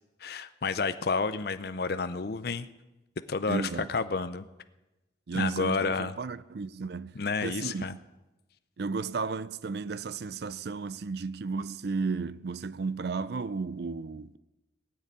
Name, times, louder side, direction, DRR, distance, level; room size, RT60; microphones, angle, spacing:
voice 1, 0.2-2.7 3.3-4.4 5.3-6.1 7.2-7.9, left 4 dB, 55° left, 0.6 m, -30 dB
voice 2, 3.5-3.9 5.3-7.2 7.4-8.0 8.8-14.4, right 4 dB, 60° right, 0.5 m, -33 dB
19.0 x 6.8 x 9.7 m
head